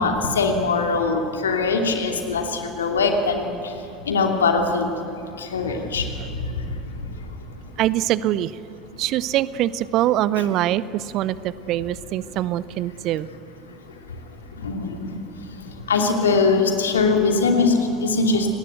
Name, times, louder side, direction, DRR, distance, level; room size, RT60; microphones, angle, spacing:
voice 1, 0.0-3.5 4.1-4.9 5.4-6.1 6.6-6.7 14.6-15.1 15.9-18.5, left 4 dB, 75° left, 3 dB, 2.8 m, -21 dB
voice 2, 7.8-8.5 9.0-13.3, right 13 dB, 45° right, 18 dB, 0.7 m, -23 dB
29.0 x 19.5 x 8.0 m, 2.6 s
figure-of-eight pair, 70°, 0 cm